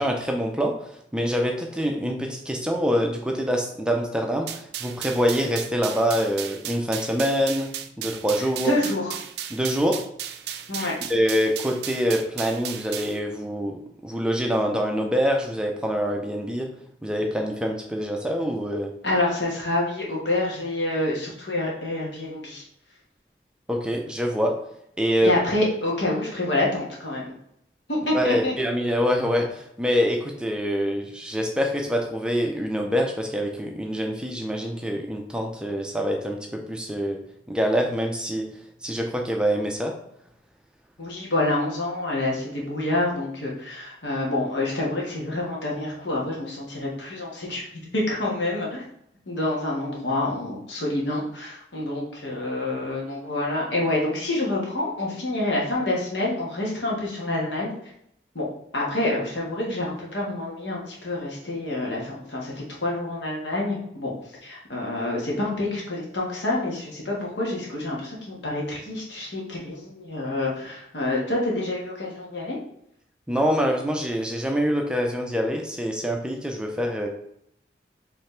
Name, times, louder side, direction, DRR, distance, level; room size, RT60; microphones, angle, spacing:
voice 1, 0.0-8.7 9.5-10.0 10.8-16.7 17.0-18.9 23.7-24.6 25.0-25.3 28.1-37.2 37.5-38.5 38.8-39.9 73.3-77.1, equal, 5° right, 2 dB, 0.4 m, -25 dB
sound 1, 4.5-13.2, right 10 dB, 70° right, 0.4 m, -35 dB
voice 2, 8.6-9.1 10.7-10.9 19.0-22.6 25.2-27.3 27.9-28.5 41.0-47.6 47.9-48.8 49.3-57.7 58.3-58.5 58.7-64.1 64.4-72.6, left 2 dB, 90° left, -3 dB, 1.5 m, -27 dB
4.6 x 3.3 x 3.2 m, 0.73 s
head